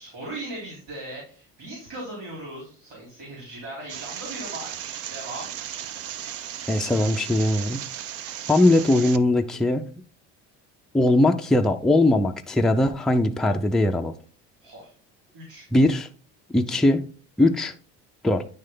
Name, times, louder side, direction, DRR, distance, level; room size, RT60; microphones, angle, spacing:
voice 1, 0.0-5.5 14.6-14.9 15.3-15.7, right 1 dB, 80° right, 3.8 m, -38 dB
sound 1, 3.9-9.2, right 10 dB, 50° right, 0.5 m, -36 dB
voice 2, 6.7-7.8 8.5-9.8 10.9-14.1 15.7-16.1 16.5-17.1 17.4-17.7 18.2-18.5, left 1 dB, ahead, 0.4 m, -20 dB
9.7 x 3.2 x 3.7 m
cardioid pair, 130°, 30 cm